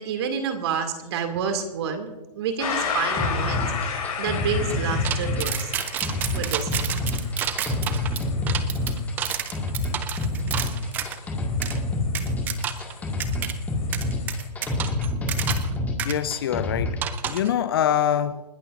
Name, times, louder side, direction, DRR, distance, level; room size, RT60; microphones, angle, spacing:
voice 1, 0.0-5.7 6.3-6.8, right 6 dB, 40° right, 2.5 m, -29 dB
sound 1, 2.6-14.5, left 6 dB, 60° left, 6.2 m, -35 dB
sound 2, 3.2-17.1, left 2 dB, 10° left, 1.9 m, -27 dB
sound 3, 5.0-11.2 11.6-11.8 12.1-12.9 13.2-13.5 13.9-15.7 16.0-16.1 17.0-17.5, right 10 dB, 10° right, 0.4 m, -30 dB
voice 2, 16.0-18.4, left 9 dB, 35° left, 0.6 m, -24 dB
29.0 x 12.0 x 2.6 m
hypercardioid pair, 140°, 21 cm